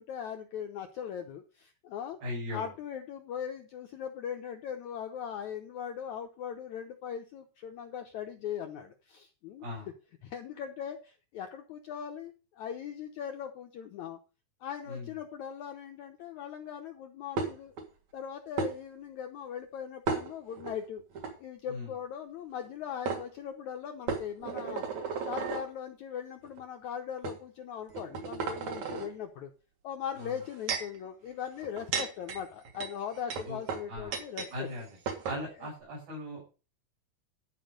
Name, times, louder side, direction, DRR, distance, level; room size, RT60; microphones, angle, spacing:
voice 1, 0.0-2.2 2.5-9.6 10.2-14.2 14.6-17.7 18.1-21.0 21.4-24.8 25.2-29.5 29.8-34.7 35.6-35.7, left 8 dB, 75° left, 5 dB, 1.7 m, -40 dB
voice 2, 2.2-2.7 9.6-9.9 14.9-15.2 21.7-21.9 30.2-30.4 33.5-33.6 33.9-34.2 34.5-34.9 35.2-36.5, left 1 dB, 70° right, -5 dB, 7.3 m, -38 dB
sound 1, 17.4-17.8 18.6-18.7 20.1-20.7 21.1-21.3 22.6-22.7 23.1-23.2 24.1-25.7 26.4-26.6 27.2-27.4 27.9-29.1 30.2-31.0 31.6-34.5 34.8-34.9 35.1-35.4, right 5 dB, 55° right, 2.8 m, -34 dB
12.5 x 5.4 x 6.5 m, 0.33 s
omnidirectional pair, 4.4 m